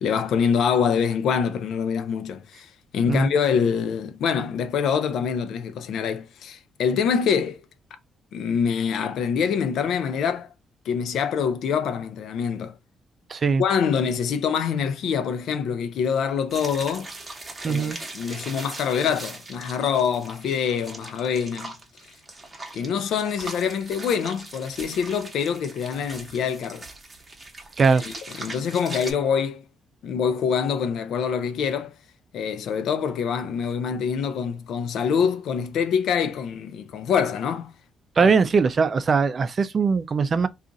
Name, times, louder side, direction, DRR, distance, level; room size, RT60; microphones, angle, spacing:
voice 1, 0.0-7.6 8.3-10.5 10.9-12.8 13.6-17.1 17.6-21.7 22.7-26.9 28.4-29.6 30.0-31.9 32.3-37.8 38.2-38.3, left 7 dB, 75° left, 0.5 m, -25 dB
voice 2, 13.3-13.6 17.6-18.0 27.8-28.0 38.2-40.5, right 5 dB, 40° right, 0.4 m, -20 dB
sound 1, 16.5-29.1, right 2 dB, 25° right, 0.9 m, -40 dB
2.5 x 2.4 x 3.8 m
cardioid pair, 90°, 0 cm